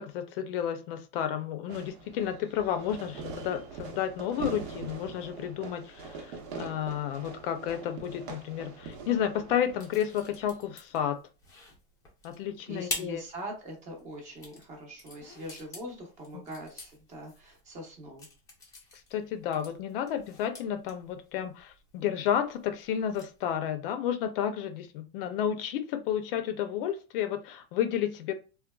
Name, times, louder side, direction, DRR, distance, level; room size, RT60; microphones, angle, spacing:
voice 1, 0.0-11.2 12.2-13.2 19.1-28.3, left 9 dB, 60° left, 0.5 m, -31 dB
Fireworks, 1.7-10.7, right 4 dB, 85° right, 0.9 m, -43 dB
sound 1, 9.5-23.5, left 2 dB, 10° left, 0.5 m, -46 dB
voice 2, 12.7-18.3, right 1 dB, 25° right, 0.7 m, -42 dB
3.8 x 2.2 x 2.2 m
supercardioid pair, 170°, 31 cm